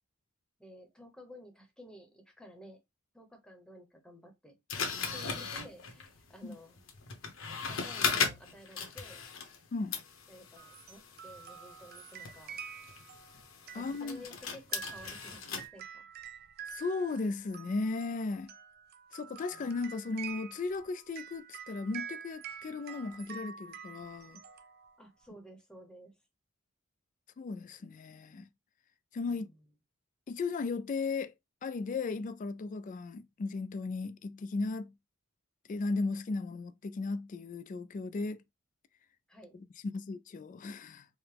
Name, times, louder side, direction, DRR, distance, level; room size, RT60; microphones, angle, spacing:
voice 1, 0.6-2.8 3.1-4.6 5.1-6.8 7.6-9.2 10.3-12.6 13.7-16.0 19.5-19.8 25.0-26.1 29.3-29.7 39.3-39.6, equal, 5° left, 0.9 m, -53 dB
sound 1, 4.7-9.6 9.9-15.7, left 5 dB, 65° left, 0.9 m, -38 dB
sound 2, 10.6-25.3, right 8 dB, 50° right, 0.4 m, -48 dB
voice 2, 13.7-14.2 16.7-18.5 19.1-24.4 27.4-28.5 29.1-29.5 30.3-31.3 31.6-34.9 35.7-38.4 39.5-39.6 39.9-41.1, left 3 dB, 40° left, 0.3 m, -36 dB
4.7 x 2.1 x 3.3 m
head